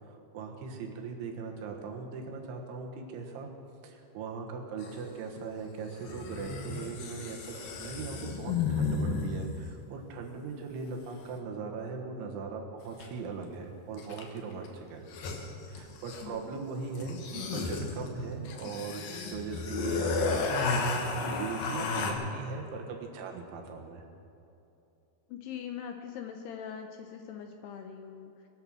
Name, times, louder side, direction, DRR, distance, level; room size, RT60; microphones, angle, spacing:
voice 1, 0.1-3.5 3.8-15.1 15.7-24.1, right 4 dB, 80° right, 2 dB, 3.8 m, -39 dB
sound 1, 4.8-4.9 6.0-9.6 13.0-13.1 14.0-14.4 14.6-14.7 15.0-16.4 16.9-22.1, left 4 dB, 65° left, 2.6 m, -33 dB
voice 2, 16.2-16.5 25.3-28.5, left 8 dB, 80° left, 5 dB, 2.5 m, -42 dB
23.5 x 8.8 x 6.2 m, 2.8 s
omnidirectional pair, 5.4 m